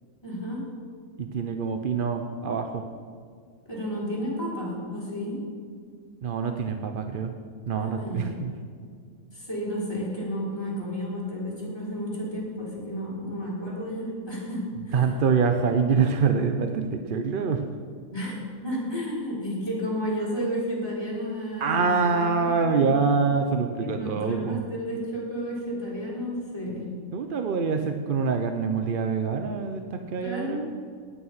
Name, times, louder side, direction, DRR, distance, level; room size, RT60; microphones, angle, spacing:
voice 1, 0.2-0.6 3.7-5.4 7.7-8.3 9.3-14.9 18.1-18.3 18.6-23.0 23.8-26.8 30.2-30.6, equal, 15° left, -6 dB, 4.9 m, -32 dB
voice 2, 1.2-2.9 6.2-7.3 7.7-8.5 14.9-17.7 21.6-24.6 27.1-30.6, right 5 dB, 45° right, 6 dB, 0.8 m, -25 dB
19.0 x 8.6 x 5.7 m, 2.1 s
omnidirectional pair, 1.5 m